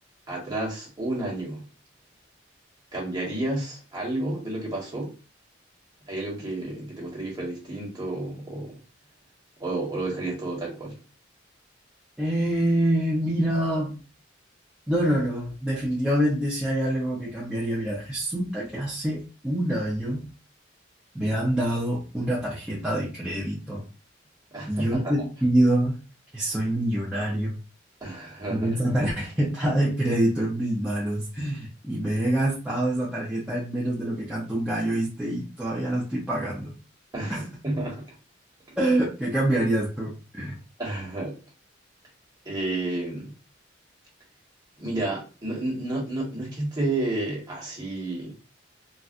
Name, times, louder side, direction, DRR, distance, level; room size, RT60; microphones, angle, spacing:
voice 1, 0.3-1.6 2.9-5.1 6.1-8.8 9.6-11.0 24.5-25.1 28.0-28.8 37.1-38.1 40.8-41.3 42.4-43.3 44.8-48.3, right 2 dB, 20° right, 1.3 m, -31 dB
voice 2, 12.2-14.0 14.9-20.2 21.1-23.8 24.7-26.0 26.3-27.6 28.5-36.7 37.3-37.4 38.8-40.6, right 1 dB, 5° right, 0.6 m, -26 dB
4.0 x 2.2 x 2.5 m
head